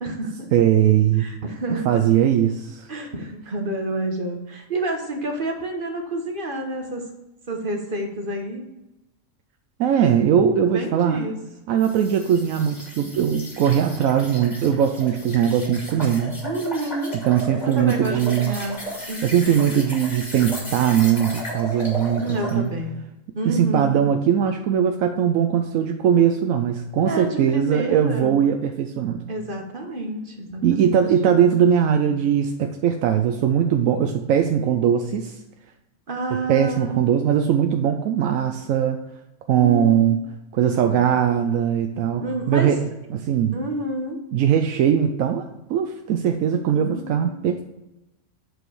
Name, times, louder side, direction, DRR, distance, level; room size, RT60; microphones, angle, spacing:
voice 1, 0.0-0.5 1.2-2.0 2.9-7.0 7.5-8.6 10.7-11.4 16.4-17.2 17.6-18.8 19.1-19.5 22.2-23.0 23.3-24.1 27.0-28.4 29.3-31.0 36.1-37.0 39.6-40.0 42.2-42.7 43.5-44.2 46.7-47.5, right 2 dB, 45° right, 3 dB, 1.2 m, -29 dB
voice 2, 0.5-1.3 1.7-2.9 9.8-11.2 11.7-16.3 17.1-18.6 19.2-22.7 23.4-29.3 30.6-35.4 36.3-39.0 39.5-40.2 40.5-43.6 44.3-47.6, right 9 dB, 85° right, 5 dB, 1.0 m, -20 dB
sound 1, 11.8-22.6, right 1 dB, 30° left, 2.4 m, -35 dB
8.2 x 4.9 x 4.7 m, 0.95 s
omnidirectional pair, 1.4 m